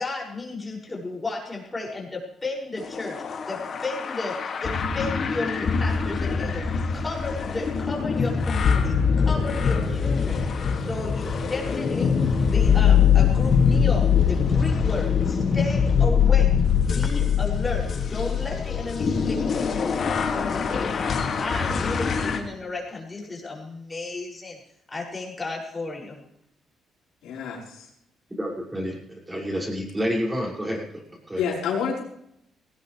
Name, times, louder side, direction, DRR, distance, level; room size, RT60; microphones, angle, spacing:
voice 1, 0.0-6.7 6.9-10.4 10.8-20.1 20.3-24.6 24.9-26.2, left 3 dB, 20° left, -2 dB, 6.9 m, -33 dB
sound 1, 2.8-22.4, left 6 dB, 55° left, 2.5 m, -23 dB
voice 2, 27.2-27.9 31.4-32.0, left 6 dB, 85° left, -1 dB, 4.8 m, -28 dB
voice 3, 28.4-31.4, equal, 15° right, -2 dB, 6.7 m, -29 dB
19.0 x 18.5 x 3.5 m, 0.76 s
cardioid pair, 90°, 0 cm